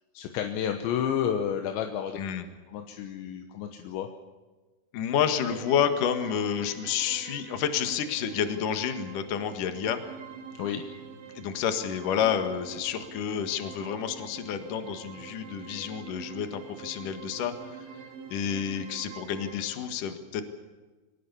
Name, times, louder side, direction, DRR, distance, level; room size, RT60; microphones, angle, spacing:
voice 1, 0.2-2.2 2.7-4.1 10.6-10.8, left 8 dB, 85° left, 5 dB, 3.5 m, -30 dB
voice 2, 2.2-2.5 4.9-10.0 11.3-17.8 18.3-20.4, left 8 dB, 55° left, 8 dB, 2.9 m, -29 dB
sound 1, 5.5-19.7, right 6 dB, 85° right, 5.1 m, -45 dB
24.0 x 19.5 x 7.1 m, 1.3 s
omnidirectional pair, 5.1 m